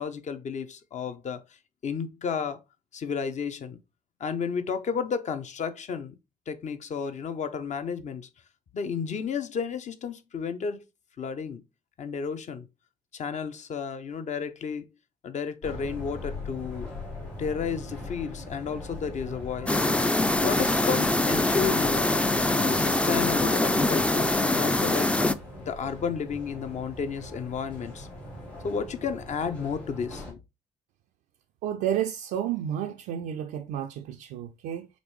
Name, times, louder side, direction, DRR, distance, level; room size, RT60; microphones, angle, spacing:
voice 1, 0.0-1.4 1.8-2.6 2.9-3.8 4.2-6.2 6.5-8.3 8.7-10.8 11.2-11.6 12.0-12.7 13.1-14.8 15.2-16.9 17.4-19.8 20.4-22.2 22.6-25.1 25.7-28.1 28.6-30.4, left 6 dB, 45° left, 0.7 m, -32 dB
sound 1, 15.6-30.3, left 2 dB, 75° left, 2.2 m, -41 dB
sound 2, 19.7-25.3, left 2 dB, 5° left, 0.4 m, -24 dB
voice 2, 31.6-34.9, right 10 dB, 65° right, 0.4 m, -31 dB
5.2 x 3.2 x 3.0 m
hypercardioid pair, 45°, 17 cm